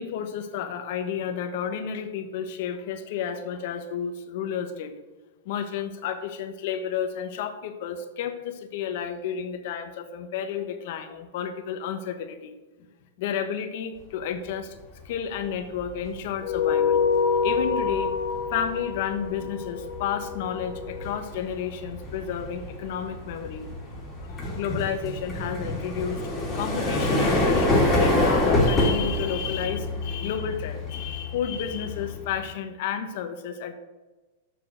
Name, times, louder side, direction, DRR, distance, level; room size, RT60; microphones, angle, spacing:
voice 1, 0.0-4.9 5.4-12.5 13.2-14.8 15.0-17.0 17.4-23.9 24.3-26.3 26.5-33.7, left 8 dB, 60° left, 8 dB, 1.1 m, -31 dB
sound 1, 15.1-15.4 15.7-32.5, left 1 dB, 15° left, 2.9 m, -27 dB
sound 2, 16.4-21.2, left 5 dB, 40° left, 1.6 m, -27 dB
6.9 x 6.7 x 6.3 m, 1.2 s
hypercardioid pair, 140°, 0 cm